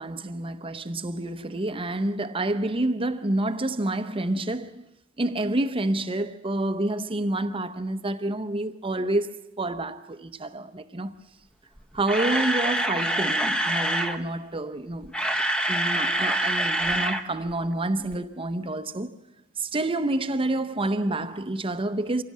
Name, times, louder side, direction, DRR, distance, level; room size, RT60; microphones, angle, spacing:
voice 1, 0.0-4.9 5.2-11.1 11.9-15.1 15.7-19.2 19.6-22.2, right 2 dB, 25° right, 0.8 m, -28 dB
Camera, 11.8-14.2 14.9-17.2 17.5-17.6 18.1-18.2, right 1 dB, 5° left, 1.0 m, -25 dB
25.0 x 16.5 x 7.4 m
head